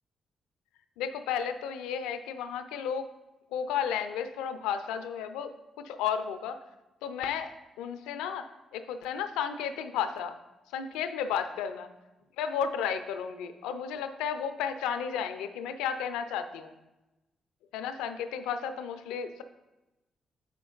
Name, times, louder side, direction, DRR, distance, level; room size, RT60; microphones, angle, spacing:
voice 1, 1.0-3.1 3.5-5.5 5.8-6.6 7.0-10.4 10.7-11.9 12.4-16.7 17.7-19.4, left 8 dB, 90° left, 10 dB, 0.4 m, -33 dB
6.9 x 5.1 x 3.9 m, 1.0 s
supercardioid pair, 55°, 0 cm